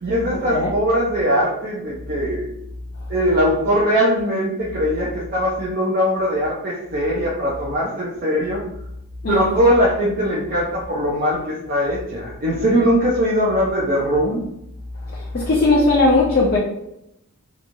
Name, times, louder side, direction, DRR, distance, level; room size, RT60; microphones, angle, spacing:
voice 1, 0.0-2.5 3.1-8.6 9.3-14.4, equal, 40° right, 0.5 m, -20 dB
voice 2, 15.1-16.6, left 2 dB, 45° left, 0.4 m, -18 dB
2.9 x 2.3 x 2.6 m
head